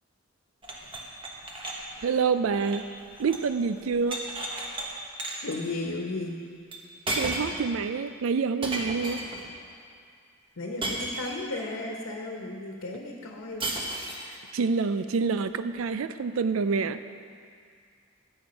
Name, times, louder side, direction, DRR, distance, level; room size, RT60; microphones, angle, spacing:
sound 1, 0.6-3.5 3.8-4.9 5.2-5.6 6.7-6.8 7.1-7.6 8.6-9.5 10.8-11.6 13.6-14.3, right 1 dB, 25° right, 1.3 m, -34 dB
voice 1, 2.0-2.9 3.2-4.2 7.2-9.2 14.5-17.0, right 5 dB, 85° right, 11 dB, 0.4 m, -27 dB
voice 2, 5.4-6.4 10.6-13.7 14.1-14.4, left 2 dB, 80° left, 0 dB, 1.2 m, -34 dB
13.0 x 8.7 x 5.3 m, 2.2 s
head